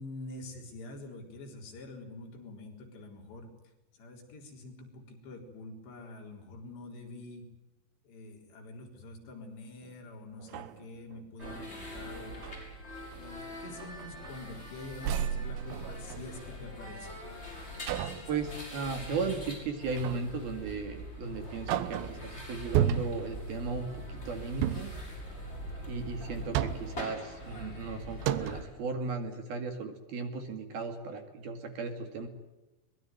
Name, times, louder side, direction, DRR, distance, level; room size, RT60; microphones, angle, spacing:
voice 1, 0.0-3.5 3.9-7.4 8.0-12.5 13.1-17.2, left 2 dB, 65° left, 2 dB, 6.1 m, -46 dB
sound 1, 9.8-9.9 10.4-11.6 12.2-12.6 13.1-13.3 13.7-14.7 15.0-16.6 17.9-18.3 20.0-20.4 20.9-21.0 21.4-22.3 22.7-23.4 24.5-25.0 26.2-27.0 27.8-27.9 28.2-28.7, right 10 dB, 75° right, 3.2 m, -33 dB
sound 2, 11.4-28.6, equal, 10° left, 7.3 m, -43 dB
voice 2, 18.3-24.9 25.8-32.3, right 4 dB, 55° right, 6 dB, 3.8 m, -36 dB
23.5 x 21.5 x 9.4 m, 1.0 s
omnidirectional pair, 5.5 m